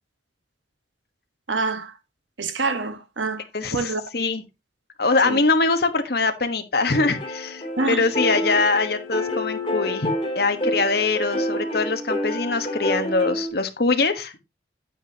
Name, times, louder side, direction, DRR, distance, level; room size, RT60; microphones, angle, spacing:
voice 1, 1.5-1.9 2.4-3.4 3.7-4.0 5.2-5.4 7.8-8.1, right 3 dB, 85° right, 1.3 m, -26 dB
voice 2, 3.5-4.4 5.0-14.3, left 3 dB, 55° left, 1.3 m, -23 dB
sound 1, 6.9-13.5, left 1 dB, 30° left, 2.8 m, -28 dB
9.2 x 9.1 x 2.8 m
head